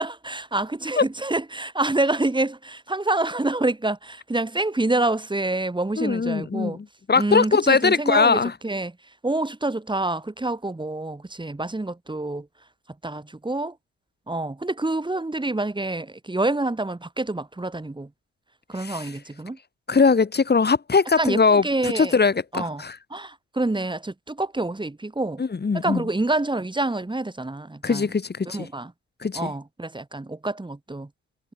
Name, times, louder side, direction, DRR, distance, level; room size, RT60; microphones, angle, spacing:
voice 1, 0.0-6.8 7.2-8.9 9.2-12.5 13.0-13.7 14.3-18.1 18.7-19.6 21.2-22.1 22.5-22.8 23.1-25.4 25.7-28.1 28.5-28.9 29.4-31.1, right 2 dB, 15° right, 7.2 m, -27 dB
voice 2, 6.0-8.5 18.8-19.1 19.9-23.0 25.4-26.0 27.8-28.7 29.2-29.5, left 4 dB, 35° left, 6.7 m, -21 dB
supercardioid pair, 60°, 29 cm